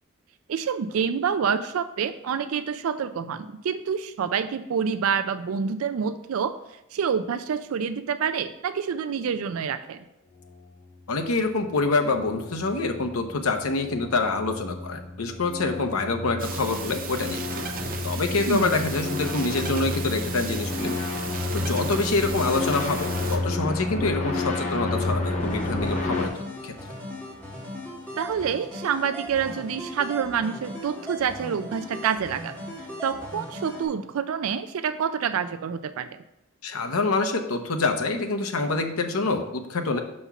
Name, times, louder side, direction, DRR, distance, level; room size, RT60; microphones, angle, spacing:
voice 1, 0.5-6.5 6.9-10.0 18.5-18.8 28.2-32.6 33.0-36.2, right 7 dB, 75° right, 11 dB, 0.4 m, -27 dB
voice 2, 11.1-17.4 18.0-21.0 21.5-26.7 36.6-40.0, left 3 dB, 80° left, 5 dB, 0.8 m, -26 dB
sound 1, 11.7-26.3, left 2 dB, 35° left, 0.9 m, -31 dB
sound 2, 16.4-23.4, right 5 dB, 40° right, 0.8 m, -36 dB
sound 3, 25.4-33.9, equal, 10° left, 1.7 m, -38 dB
5.8 x 4.3 x 5.6 m, 0.89 s
head